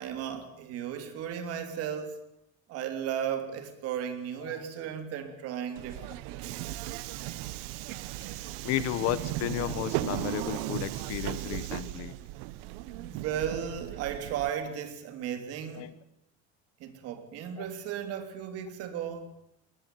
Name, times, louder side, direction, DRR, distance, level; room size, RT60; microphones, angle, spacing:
voice 1, 0.0-2.2 2.7-6.6 12.9-15.9 16.8-19.3, right 9 dB, 45° right, 3.3 m, -35 dB
Subway metro underground, 5.8-14.5, right 16 dB, 75° right, 1.3 m, -36 dB
voice 2, 8.3-12.1 15.8-15.9 17.6-17.7, left 15 dB, 50° left, 1.1 m, -33 dB
22.0 x 19.0 x 9.3 m
cardioid pair, 180°, 32 cm